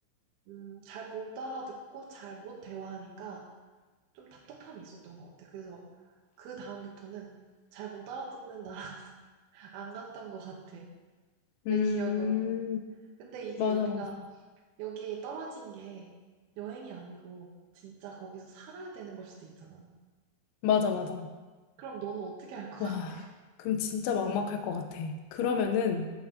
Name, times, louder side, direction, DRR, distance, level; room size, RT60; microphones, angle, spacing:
voice 1, 0.5-3.5 4.1-7.3 7.7-9.1 9.5-10.9 11.7-12.6 13.2-14.2 14.8-16.1 16.6-19.9 21.8-23.3, right 6 dB, 70° right, -1 dB, 2.5 m, -42 dB
voice 2, 11.7-12.8 13.6-14.0 20.6-21.3 22.8-23.2 23.6-26.1, left 6 dB, 80° left, 6 dB, 2.4 m, -29 dB
8.7 x 5.7 x 6.7 m, 1.3 s
omnidirectional pair, 5.3 m